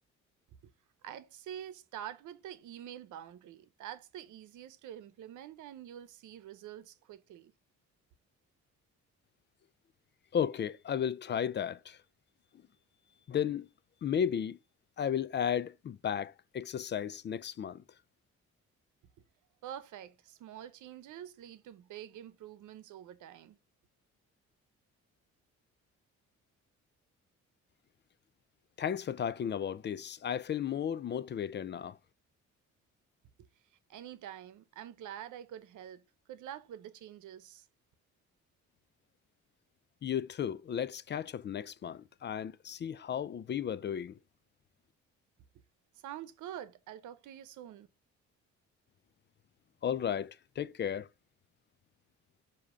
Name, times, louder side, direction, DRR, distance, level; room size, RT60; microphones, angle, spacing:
voice 1, 1.0-7.5 19.6-23.6 33.4-33.5 33.9-36.0 36.3-37.7 45.9-47.9, right 11 dB, 80° right, 0.8 m, -46 dB
voice 2, 10.3-12.0 13.3-13.7 14.0-14.6 15.0-17.8 28.8-32.0 40.0-44.2 49.8-51.1, left 8 dB, 35° left, 0.4 m, -34 dB
7.3 x 2.8 x 4.9 m
cardioid pair, 90°, 30 cm